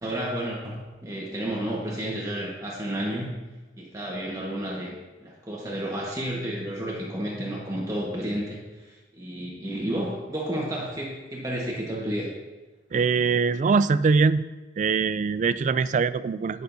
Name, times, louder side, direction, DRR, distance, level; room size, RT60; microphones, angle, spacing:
voice 1, 0.0-3.4 3.8-12.3, right 1 dB, 20° right, -4 dB, 1.4 m, -31 dB
voice 2, 12.9-14.5 14.8-16.6, right 4 dB, 40° right, 16 dB, 0.3 m, -22 dB
18.5 x 6.7 x 2.7 m, 1.2 s
head